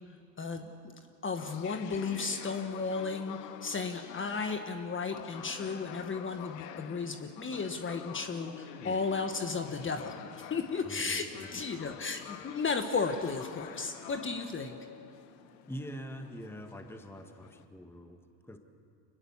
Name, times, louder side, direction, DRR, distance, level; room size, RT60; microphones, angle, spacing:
voice 1, 0.4-0.7 1.2-11.2 11.5-14.8, left 4 dB, 25° left, 6 dB, 1.5 m, -34 dB
sound 1, 1.4-17.6, left 11 dB, 80° left, 1.2 m, -48 dB
voice 2, 10.8-11.9 15.7-18.6, equal, 5° left, 6 dB, 1.6 m, -45 dB
25.5 x 19.5 x 7.3 m, 2.7 s
supercardioid pair, 100°, 48 cm